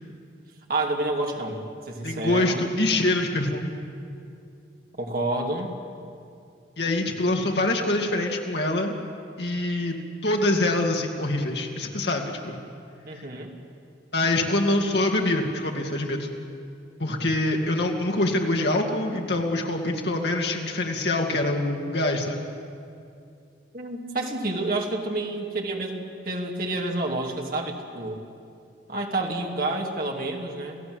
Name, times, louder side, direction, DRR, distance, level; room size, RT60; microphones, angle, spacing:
voice 1, 0.7-2.6 5.0-5.7 13.1-13.5 23.7-28.2 28.9-30.8, right 2 dB, 50° right, 1 dB, 2.6 m, -29 dB
voice 2, 2.0-3.7 6.8-8.9 9.4-10.0 10.2-12.6 14.1-16.3 17.0-22.4, left 2 dB, 65° left, 1 dB, 2.5 m, -25 dB
28.0 x 16.5 x 7.9 m, 2.5 s
head